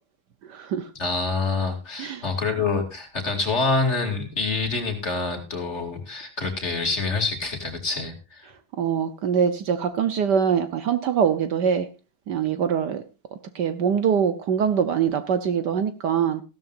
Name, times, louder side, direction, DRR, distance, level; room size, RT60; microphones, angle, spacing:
voice 1, 0.4-0.9 2.0-2.2 8.7-11.9 12.3-13.0 13.5-16.4, right 7 dB, 65° right, 1.3 m, -23 dB
voice 2, 1.0-8.5, left 3 dB, 35° left, 2.9 m, -26 dB
16.0 x 13.0 x 2.5 m
omnidirectional pair, 2.2 m